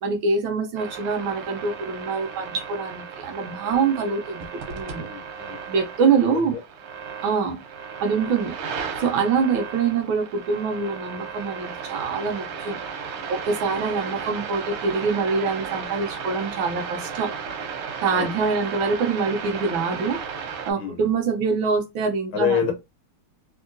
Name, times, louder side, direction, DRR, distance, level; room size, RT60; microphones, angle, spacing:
voice 1, 0.0-5.1 5.7-6.5 7.2-7.6 8.0-8.5 9.0-12.8 13.1-17.3 18.0-20.2 20.6-22.7, right 5 dB, 70° right, 1.4 m, -25 dB
sound 1, 0.8-20.7, right 6 dB, 85° right, 1.7 m, -35 dB
voice 2, 4.9-5.6 6.2-6.6 18.1-18.3 20.8-21.1 22.3-22.7, left 8 dB, 70° left, 1.7 m, -27 dB
3.7 x 2.8 x 2.5 m
omnidirectional pair, 2.4 m